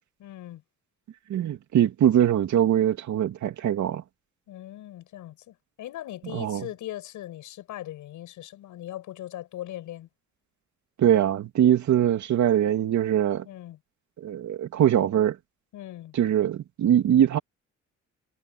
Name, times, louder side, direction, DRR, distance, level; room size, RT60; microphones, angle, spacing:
voice 1, 0.2-0.6 4.5-10.1 13.4-13.8 15.7-16.2, left 13 dB, 85° left, 6.3 m, -39 dB
voice 2, 1.3-4.0 6.3-6.7 11.0-13.4 14.2-15.4 16.1-17.4, right 10 dB, 70° right, 2.8 m, -22 dB
cardioid pair, 90°, 30 cm